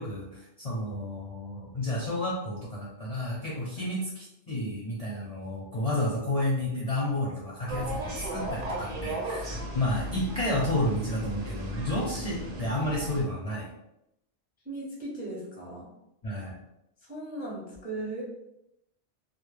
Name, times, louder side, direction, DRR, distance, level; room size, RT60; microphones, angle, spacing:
voice 1, 0.0-13.7 16.2-16.5, left 1 dB, 50° left, -6 dB, 0.5 m, -31 dB
sound 1, 7.7-13.2, right 1 dB, 55° right, 0.7 m, -35 dB
voice 2, 14.6-15.9 17.0-18.2, right 2 dB, 10° right, -5 dB, 0.4 m, -37 dB
2.1 x 2.0 x 3.1 m, 0.84 s
omnidirectional pair, 1.1 m